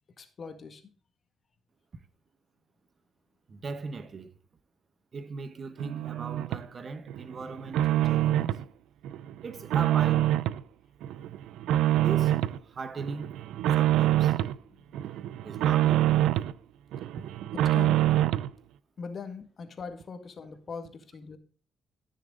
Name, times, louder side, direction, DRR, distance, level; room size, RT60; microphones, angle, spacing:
voice 1, 0.2-0.8 14.6-15.2 17.5-18.1 19.0-21.4, left 5 dB, 45° left, 1.8 m, -41 dB
voice 2, 3.5-4.3 5.1-8.6 9.4-10.4 11.9-13.4 13.7-14.4 15.4-16.1 17.2-17.3, right 4 dB, 45° right, 1.0 m, -38 dB
sound 1, 5.8-6.6 7.1-8.6 9.0-10.6 11.0-12.6 13.0-14.6 14.9-16.5 16.9-18.5, right 13 dB, 85° right, 0.4 m, -25 dB
14.0 x 6.5 x 3.8 m
cardioid pair, 90°, 0 cm